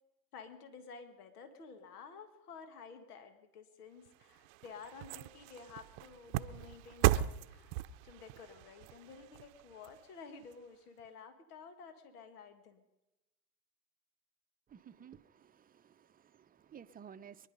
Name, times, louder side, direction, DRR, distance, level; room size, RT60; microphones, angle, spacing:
voice 1, 0.3-7.8 8.0-12.8, left 5 dB, 80° left, 1.8 m, -52 dB
sound 1, 4.1-10.5 11.0-11.1, right 15 dB, 60° right, 0.7 m, -37 dB
voice 2, 14.7-17.5, right 8 dB, 20° right, 0.7 m, -55 dB
23.5 x 11.0 x 5.4 m
hypercardioid pair, 85°, 45 cm